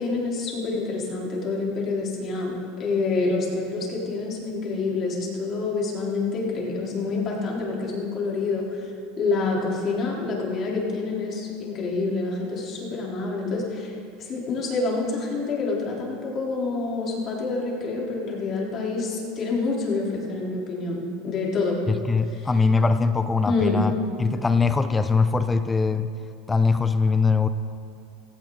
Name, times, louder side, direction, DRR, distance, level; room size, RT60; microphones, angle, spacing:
voice 1, 0.0-8.7 9.2-13.9 14.2-21.8 22.4-22.5 23.5-23.8, left 3 dB, 40° left, -3 dB, 3.7 m, -27 dB
voice 2, 21.9-23.9 24.2-26.1 26.5-27.5, left 4 dB, 15° left, 11 dB, 0.6 m, -21 dB
16.5 x 16.0 x 4.0 m, 2.5 s
supercardioid pair, 125°, 0 cm